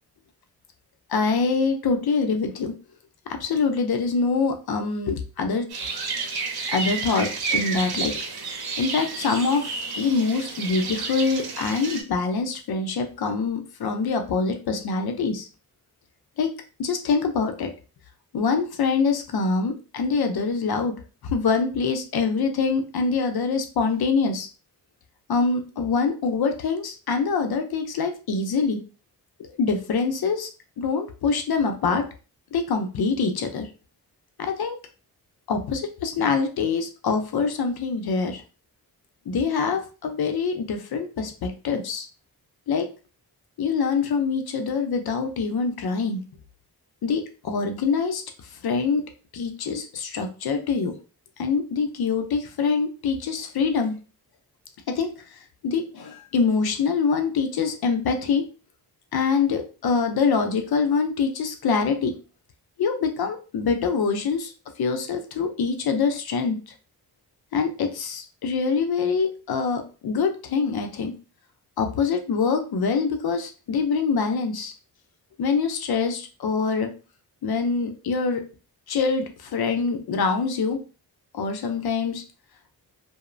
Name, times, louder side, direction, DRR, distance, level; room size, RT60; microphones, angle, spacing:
voice 1, 1.1-2.7 3.3-5.7 6.7-8.2 8.8-15.5 16.4-16.5 16.8-17.7 18.3-20.9 21.2-24.5 25.3-28.8 29.4-30.5 30.8-32.0 32.5-33.7 34.4-34.8 35.5-38.4 39.3-42.1 42.7-42.9 43.6-46.2 47.0-48.2 48.6-49.1 49.3-50.9 51.4-53.9 54.9-55.1 55.6-58.4 59.1-62.2 62.8-64.5 64.8-66.7 67.5-71.1 71.8-74.7 75.4-76.9 77.4-78.4 78.9-80.8 81.3-82.2, left 5 dB, 70° left, 6 dB, 0.6 m, -24 dB
sound 1, 5.7-12.0, right 4 dB, 70° right, 0.7 m, -30 dB
2.9 x 2.0 x 2.5 m, 0.34 s
cardioid pair, 60°, 39 cm